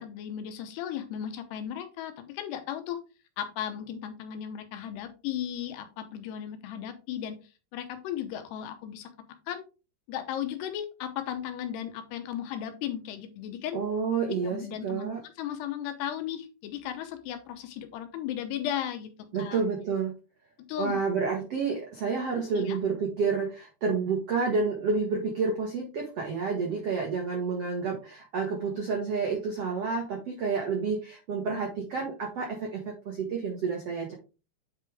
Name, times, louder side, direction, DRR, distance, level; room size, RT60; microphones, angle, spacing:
voice 1, 0.0-3.0 3.4-7.4 7.7-9.1 9.5-9.6 10.1-13.8 14.2-19.1 19.4-19.6 20.7-21.0 22.4-22.8, left 10 dB, 75° left, 8 dB, 2.7 m, -35 dB
voice 2, 13.7-15.2 19.3-20.1 20.8-34.1, right 5 dB, 85° right, 0 dB, 1.3 m, -29 dB
8.4 x 5.0 x 3.4 m, 0.31 s
omnidirectional pair, 5.1 m